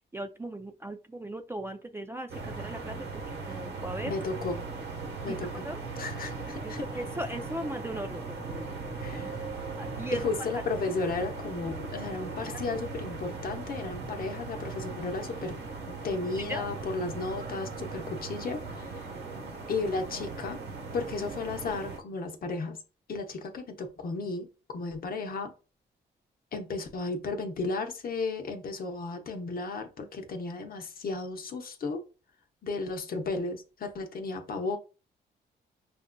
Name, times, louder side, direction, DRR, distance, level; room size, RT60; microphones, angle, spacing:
voice 1, 0.1-3.1 3.4-4.1 5.3-5.4 5.6-5.8 6.6-8.7 9.2-9.3 9.8-10.2 12.5-12.6 16.4-16.7, right 1 dB, 10° right, 7 dB, 0.4 m, -38 dB
sound 1, 2.3-22.0, right 3 dB, 65° right, 1.0 m, -38 dB
voice 2, 4.1-4.6 5.2-5.7 6.0-6.9 9.0-9.6 10.1-15.6 15.9-19.1 19.7-20.6 20.9-22.8 23.1-25.5 26.5-32.0 32.6-34.8, left 3 dB, 50° left, 5 dB, 0.8 m, -34 dB
5.2 x 2.5 x 2.2 m, 0.33 s
cardioid pair, 80°, 19 cm